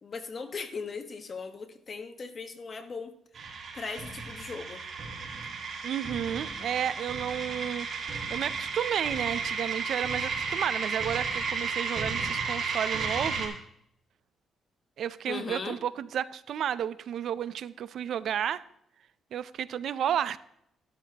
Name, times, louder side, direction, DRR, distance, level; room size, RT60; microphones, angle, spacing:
voice 1, 0.0-3.1 3.7-4.8 15.3-15.8, left 4 dB, 40° left, 1.3 m, -38 dB
sound 1, 3.3-13.5, right 5 dB, 50° right, 4.1 m, -33 dB
voice 2, 5.8-13.6 15.0-18.6 19.3-20.4, right 9 dB, 65° right, 0.5 m, -32 dB
13.0 x 12.5 x 2.9 m
cardioid pair, 90°, 0 cm